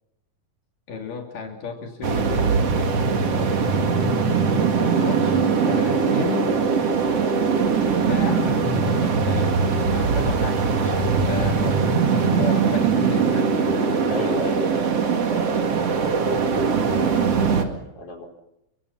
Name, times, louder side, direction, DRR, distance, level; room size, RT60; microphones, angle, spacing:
voice 1, 0.9-2.7 4.8-6.5 8.0-14.3, left 4 dB, 80° left, 1 dB, 4.5 m, -32 dB
sound 1, 2.0-17.6, right 5 dB, 50° right, 3.1 m, -21 dB
voice 2, 14.1-15.3 15.6-18.3, left 2 dB, 45° left, 2 dB, 5.7 m, -35 dB
29.5 x 24.5 x 5.7 m, 0.84 s
omnidirectional pair, 3.7 m